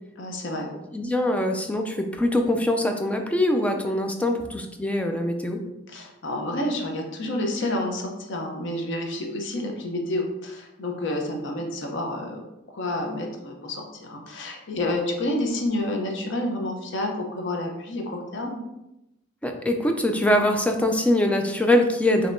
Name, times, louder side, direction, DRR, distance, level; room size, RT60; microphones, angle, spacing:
voice 1, 0.2-0.7 5.9-12.4 12.7-18.6, left 1 dB, 65° left, 2 dB, 0.7 m, -29 dB
voice 2, 0.9-5.6 19.4-22.3, left 1 dB, 5° left, 4 dB, 0.4 m, -23 dB
5.3 x 2.8 x 2.6 m, 0.92 s
head